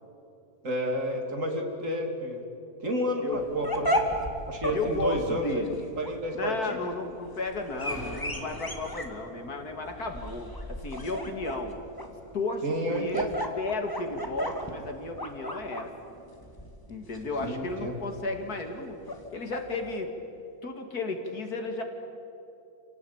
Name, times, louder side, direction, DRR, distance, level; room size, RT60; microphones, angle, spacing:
voice 1, 0.6-2.4 2.8-3.9 4.5-5.6 6.0-6.8 12.6-13.3 17.4-17.9, equal, 55° right, 2 dB, 3.3 m, -30 dB
sound 1, 3.3-19.9, equal, 15° left, 2.0 m, -35 dB
voice 2, 4.7-5.8 6.3-11.7 12.3-13.2 13.6-15.9 16.9-19.0 19.3-20.1 20.6-21.8, left 2 dB, 70° left, 4 dB, 2.8 m, -33 dB
sound 2, 7.8-12.2, equal, 10° right, 3.7 m, -46 dB
28.0 x 18.0 x 8.9 m, 2.8 s
omnidirectional pair, 1.7 m